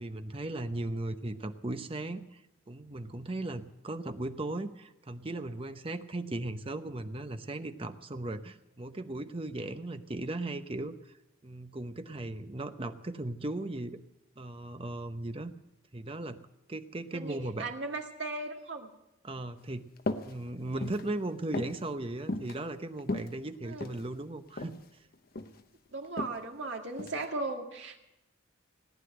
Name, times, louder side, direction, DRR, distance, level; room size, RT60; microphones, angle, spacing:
voice 1, 0.0-2.4 2.7-11.1 11.4-14.0 14.4-15.5 15.9-16.4 16.7-17.7 19.2-19.8 20.3-24.8, right 2 dB, 30° right, 9 dB, 0.8 m, -37 dB
voice 2, 17.1-18.9 23.6-24.0 25.9-28.0, right 3 dB, 65° right, 2 dB, 2.0 m, -37 dB
sound 1, 20.0-20.3 20.7-21.1 21.5-21.8 22.3-22.5 23.0-24.0 24.6-24.8 25.1-25.6 26.2-26.4 27.0-27.2, left 2 dB, 45° left, 0.8 m, -35 dB
18.0 x 9.9 x 7.9 m, 0.91 s
head